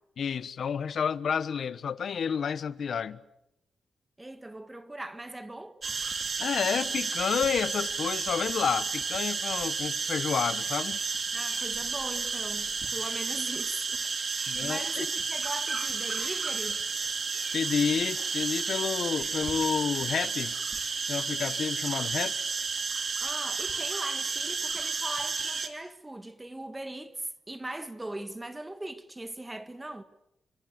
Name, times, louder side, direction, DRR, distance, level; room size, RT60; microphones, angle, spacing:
voice 1, 0.2-3.2 6.4-11.0 14.5-15.1 17.5-20.5 21.1-22.3, left 7 dB, 65° left, 1.2 m, -30 dB
voice 2, 4.2-5.8 11.3-16.8 23.2-30.0, right 1 dB, 15° right, 1.8 m, -40 dB
sound 1, 5.8-25.7, right 4 dB, 45° right, 2.9 m, -32 dB
29.0 x 25.0 x 8.2 m
cardioid pair, 110°, 0 cm